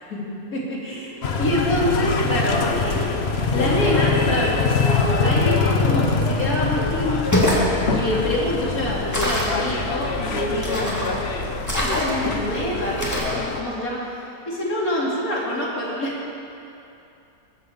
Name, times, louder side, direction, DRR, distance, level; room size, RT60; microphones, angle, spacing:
voice 1, 0.5-3.2 3.5-7.5 7.9-11.0 11.7-16.1, left 1 dB, 60° left, -5 dB, 3.6 m, -26 dB
sound 1, 1.2-13.6, left 4 dB, 45° left, 1.1 m, -24 dB
sound 2, 7.3-7.7 9.1-9.6 10.6-11.1 11.6-12.3 13.0-13.4, left 1 dB, 10° left, 2.6 m, -23 dB
21.5 x 7.9 x 7.3 m, 2.7 s
omnidirectional pair, 1.7 m